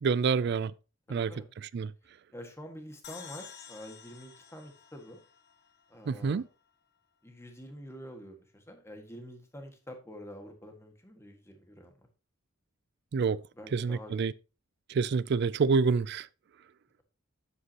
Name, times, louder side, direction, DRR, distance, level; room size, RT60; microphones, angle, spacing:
voice 1, 0.0-0.7 1.1-1.3 1.6-1.9 6.1-6.5 13.1-13.4 13.7-14.3 14.9-16.3, right 5 dB, 55° right, 0.4 m, -27 dB
voice 2, 1.1-1.5 2.3-5.2 5.9-6.4 7.2-11.9 13.6-14.2, equal, 15° left, 1.7 m, -47 dB
sound 1, 3.0-6.4, left 7 dB, 55° left, 1.2 m, -51 dB
9.6 x 8.1 x 2.9 m
head